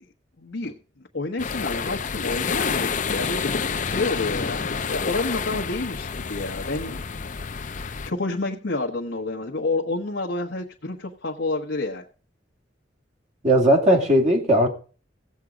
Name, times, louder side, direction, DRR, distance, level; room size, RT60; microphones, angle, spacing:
voice 1, 0.4-0.7 1.1-7.0 7.7-12.0, left 2 dB, 75° left, 1.1 m, -29 dB
sound 1, 1.4-8.1, left 5 dB, 45° left, 0.6 m, -28 dB
voice 2, 13.4-14.7, equal, 40° right, 2.2 m, -17 dB
16.0 x 7.5 x 5.0 m
head